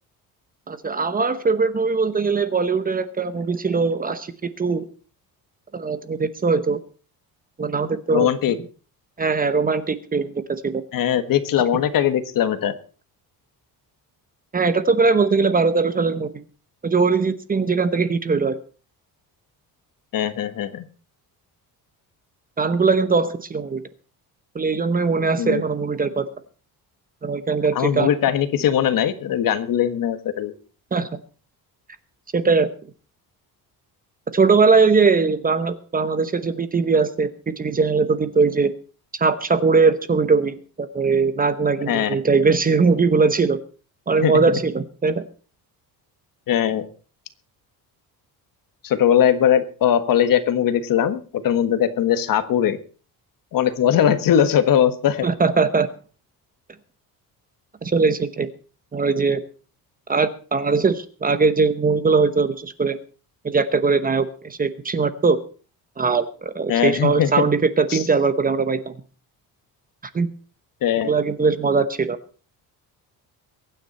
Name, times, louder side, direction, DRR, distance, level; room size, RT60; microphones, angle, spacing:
voice 1, 0.7-4.3 4.6-4.8 5.7-6.8 7.6-8.3 9.2-10.8 14.5-16.3 16.8-18.5 22.6-23.8 24.5-26.3 27.2-28.1 30.9-31.1 32.3-32.7 34.3-38.7 39.2-43.6 44.1-45.2 55.2-55.9 57.8-58.5 58.9-59.4 60.1-63.0 63.4-65.4 66.0-69.0 70.1-70.3 71.0-72.2, right 4 dB, 25° right, 12 dB, 0.9 m, -20 dB
voice 2, 8.1-8.6 10.9-12.7 20.1-20.9 25.4-25.6 27.7-30.5 41.9-42.1 44.2-44.3 46.5-46.9 48.8-52.8 53.5-55.3 66.7-67.5 67.9-68.0 70.8-71.1, left 9 dB, 60° left, 11 dB, 1.5 m, -20 dB
23.0 x 9.5 x 4.2 m, 0.38 s
cardioid pair, 150°, 38 cm